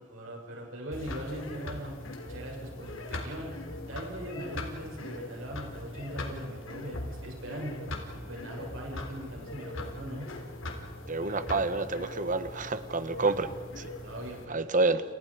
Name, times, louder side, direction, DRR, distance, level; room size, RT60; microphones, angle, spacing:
voice 1, 0.0-2.0 2.3-3.6 3.9-7.8 8.3-10.3 13.2-13.5 14.0-14.6, equal, 90° right, -1 dB, 7.4 m, -40 dB
sound 1, 0.9-14.5, left 1 dB, 85° left, 3.8 m, -40 dB
voice 2, 11.1-13.5 14.5-15.0, right 3 dB, 40° right, 11 dB, 1.4 m, -28 dB
30.0 x 29.0 x 5.2 m, 1.4 s
head